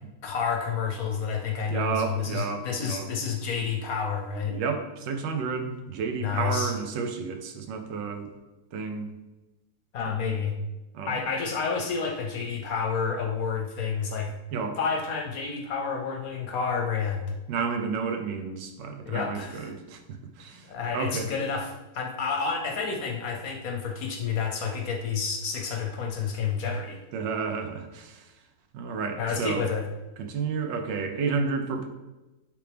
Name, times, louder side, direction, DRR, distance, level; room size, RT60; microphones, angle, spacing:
voice 1, 0.2-4.5 6.2-6.8 9.9-10.6 11.1-14.3 14.8-17.3 19.0-19.7 20.6-27.0 29.2-29.9, left 5 dB, 60° left, 3 dB, 1.1 m, -30 dB
voice 2, 1.7-3.1 4.4-8.3 8.7-9.1 10.9-11.1 14.5-14.8 17.5-20.6 20.9-21.3 27.1-28.2 28.7-29.6 30.2-31.9, right 5 dB, 80° right, 6 dB, 1.4 m, -31 dB
10.5 x 3.5 x 3.4 m, 1.1 s
omnidirectional pair, 1.9 m